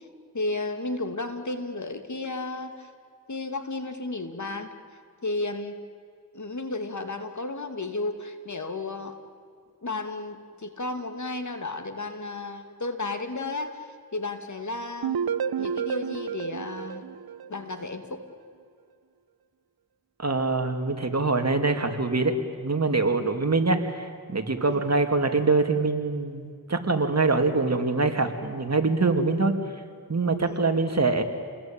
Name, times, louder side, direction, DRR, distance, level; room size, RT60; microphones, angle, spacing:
voice 1, 0.3-2.9 3.3-4.7 5.2-5.8 6.3-9.2 9.8-13.9 14.1-17.0 17.5-18.2 24.7-24.8 30.4-30.6, left 2 dB, 50° left, 7 dB, 2.7 m, -33 dB
sound 1, 15.0-18.0, right 8 dB, 80° right, 0.8 m, -31 dB
voice 2, 20.2-29.6 30.1-31.2, right 3 dB, 45° right, 6 dB, 2.7 m, -24 dB
29.0 x 21.0 x 9.1 m, 2.2 s
cardioid pair, 60°, 36 cm